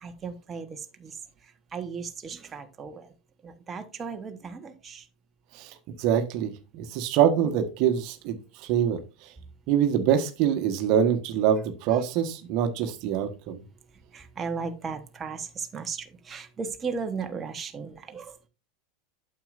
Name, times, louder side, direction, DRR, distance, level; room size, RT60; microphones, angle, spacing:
voice 1, 0.0-3.1 3.4-5.1 14.1-18.5, right 5 dB, 25° right, 7 dB, 1.2 m, -36 dB
voice 2, 5.5-9.3 9.7-13.6, right 9 dB, 55° right, 7 dB, 1.3 m, -25 dB
8.9 x 7.8 x 2.6 m, 0.30 s
hypercardioid pair, 90°, 0 cm